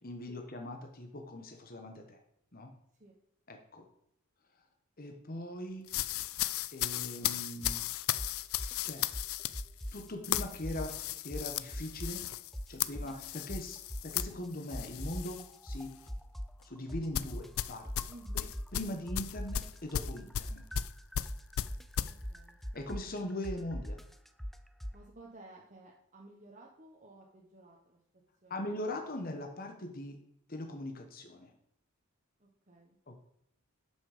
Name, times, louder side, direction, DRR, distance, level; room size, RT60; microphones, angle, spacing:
voice 1, 0.0-2.2 2.5-2.7 3.5-3.9 4.5-4.6 5.0-5.9 6.7-7.8 8.8-9.1 9.9-10.9 11.2-12.2 12.7-15.9 16.6-18.1 18.3-18.4 18.7-20.6 22.7-24.0 28.5-30.2 30.5-31.5 33.1-33.2, left 1 dB, 40° left, 4 dB, 1.2 m, -41 dB
sound 1, 5.9-15.5 15.8-16.1 17.1-22.1, left 12 dB, 70° left, 0.4 m, -36 dB
sound 2, 7.6-7.9 8.2-10.1 10.3-12.3 12.5-14.5 14.7-18.8 19.1-25.0, equal, ahead, 0.4 m, -41 dB
voice 2, 18.1-18.5 18.9-19.0 22.1-22.6 24.9-28.0 28.4-28.6 32.4-33.0, right 2 dB, 35° right, -2 dB, 1.3 m, -55 dB
12.0 x 6.2 x 5.1 m, 0.75 s
head